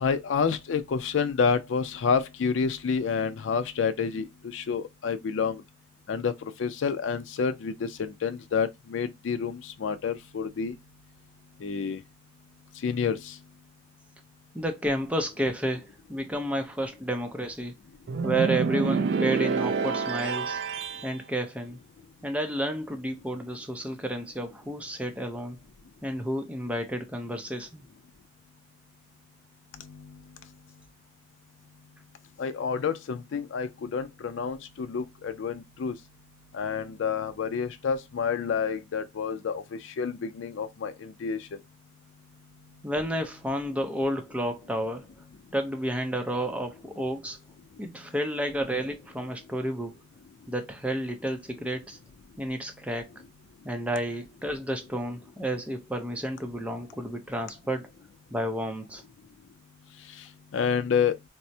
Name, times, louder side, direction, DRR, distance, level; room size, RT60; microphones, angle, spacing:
voice 1, 0.0-5.6 6.1-6.3 6.6-10.7 11.6-12.0 12.8-13.4 29.8-30.1 32.4-35.9 36.5-41.5 60.2-60.3 60.5-61.2, left 6 dB, 80° left, 0.4 m, -29 dB
voice 2, 14.5-17.7 18.2-20.6 21.0-21.8 22.2-25.6 26.0-27.8 42.8-45.1 45.5-47.4 47.8-49.9 50.5-52.0 52.4-53.1 53.6-57.9 58.3-59.0, right 1 dB, 5° right, 0.5 m, -31 dB
sound 1, 18.1-21.1, right 5 dB, 65° right, 0.4 m, -27 dB
4.4 x 2.0 x 2.7 m
head